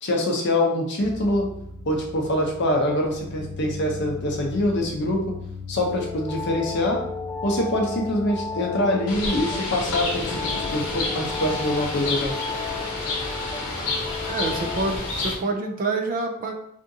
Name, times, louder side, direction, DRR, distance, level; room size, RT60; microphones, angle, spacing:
voice 1, 0.0-1.5 1.9-5.4 5.7-7.0 7.4-10.4 10.7-12.3, left 1 dB, 50° left, 1 dB, 0.6 m, -24 dB
sound 1, 1.0-9.4, left 2 dB, 5° right, 1.0 m, -39 dB
sound 2, 5.9-15.1, left 5 dB, 15° left, 0.6 m, -34 dB
Bird, 9.1-15.3, left 2 dB, 70° left, 1.0 m, -29 dB
voice 2, 14.3-16.5, right 3 dB, 40° right, 3 dB, 0.3 m, -27 dB
3.6 x 2.5 x 2.6 m, 0.73 s
head